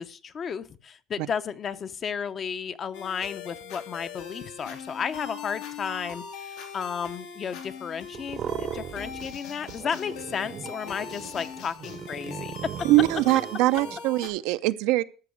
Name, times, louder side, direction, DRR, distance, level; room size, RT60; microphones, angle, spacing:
voice 1, 0.0-12.7, left 7 dB, 35° left, 0.8 m, -33 dB
sound 1, 2.9-14.3, left 6 dB, 85° left, 2.8 m, -41 dB
sound 2, 8.1-9.4 9.6-14.0, right 8 dB, 45° right, 0.7 m, -38 dB
voice 2, 12.9-15.0, right 17 dB, 75° right, 0.6 m, -22 dB
13.5 x 6.1 x 6.3 m
cardioid pair, 120°, 0 cm